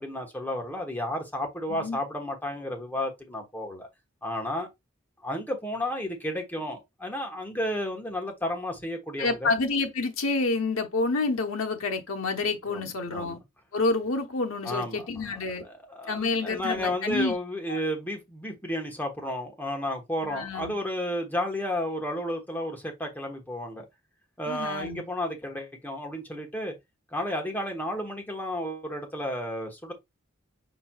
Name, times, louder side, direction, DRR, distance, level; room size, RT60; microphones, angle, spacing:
voice 1, 0.0-3.9 4.2-4.7 5.2-9.5 12.7-13.4 14.6-15.1 15.3-23.8 24.4-26.7 27.1-29.9, left 1 dB, 10° left, 1.2 m, -32 dB
voice 2, 9.2-13.4 13.7-15.6 16.1-17.4 17.7-17.8 20.2-20.7 24.5-25.0, left 3 dB, 75° left, 0.9 m, -28 dB
5.0 x 4.5 x 2.3 m
head